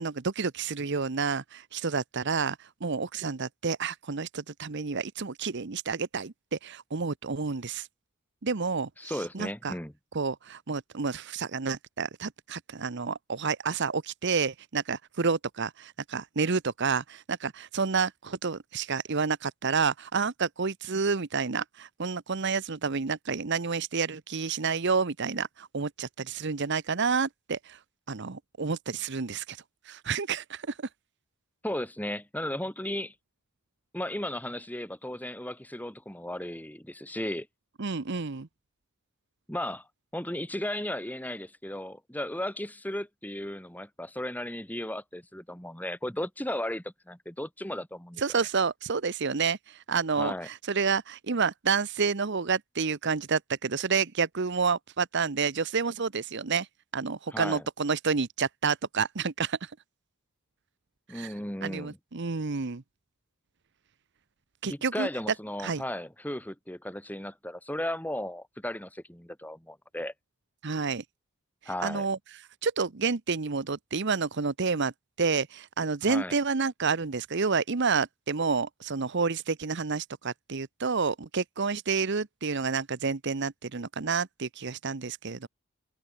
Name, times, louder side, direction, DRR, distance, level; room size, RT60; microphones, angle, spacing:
voice 1, 0.0-7.9 8.4-9.7 10.1-27.8 28.1-30.8 37.8-38.5 48.2-56.7 56.9-59.7 61.1-61.3 61.6-62.8 64.6-65.1 65.6-65.8 70.6-71.0 71.8-74.9 75.2-85.5, right 5 dB, 55° right, 0.9 m, -29 dB
voice 2, 9.0-9.9 31.6-33.1 33.9-37.5 39.5-39.9 40.1-48.2 50.1-50.5 57.3-57.6 61.1-62.0 64.7-70.1 71.7-72.1 76.0-76.3, left 1 dB, 10° left, 2.8 m, -35 dB
head